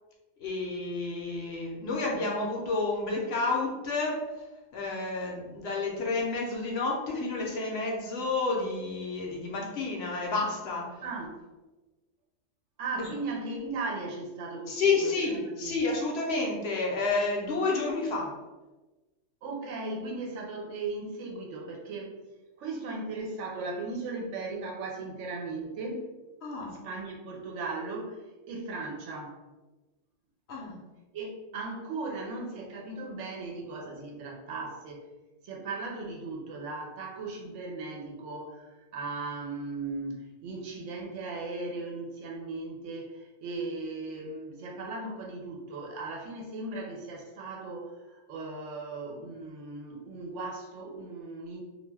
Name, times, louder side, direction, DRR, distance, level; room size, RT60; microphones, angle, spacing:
voice 1, 0.4-4.4 4.7-10.9 14.7-18.3 26.4-26.8 30.5-30.8, left 3 dB, 65° left, -1 dB, 0.8 m, -30 dB
voice 2, 11.0-11.4 12.8-15.8 19.4-22.1 22.6-26.1 26.6-29.4 31.1-35.1 35.4-51.6, right 3 dB, 80° right, 0 dB, 0.9 m, -37 dB
2.4 x 2.2 x 3.2 m, 1.2 s
omnidirectional pair, 1.2 m